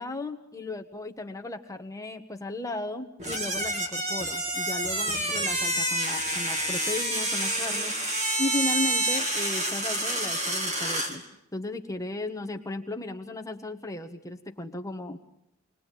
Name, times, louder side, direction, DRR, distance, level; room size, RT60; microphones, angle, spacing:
voice 1, 0.0-7.9 8.4-11.2 11.5-15.2, left 2 dB, 15° left, 5 dB, 1.3 m, -35 dB
sound 1, 3.2-11.2, right 1 dB, 35° right, 3.0 m, -28 dB
29.0 x 21.5 x 9.2 m, 0.77 s
head